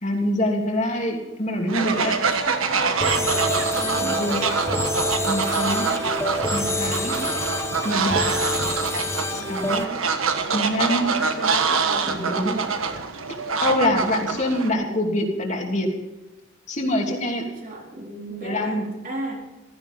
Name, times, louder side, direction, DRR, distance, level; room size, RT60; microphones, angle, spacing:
voice 1, 0.0-2.1 4.0-4.5 5.3-5.9 6.5-7.2 7.8-8.3 9.3-9.8 10.5-11.1 12.1-12.6 13.6-15.9 16.7-17.4 18.4-18.8, left 1 dB, 35° left, 1 dB, 3.0 m, -25 dB
Fowl, 1.7-14.7, right 5 dB, 85° right, 1.5 m, -25 dB
voice 2, 1.8-5.0 8.3-9.8 11.0-12.8 17.4-19.4, right 1 dB, 40° right, -1 dB, 3.9 m, -37 dB
sound 1, 3.0-9.9, left 2 dB, 15° left, 1.0 m, -28 dB
sound 2, 3.2-9.0, right 4 dB, 25° right, 1.0 m, -33 dB
16.0 x 15.0 x 5.4 m, 1.0 s
head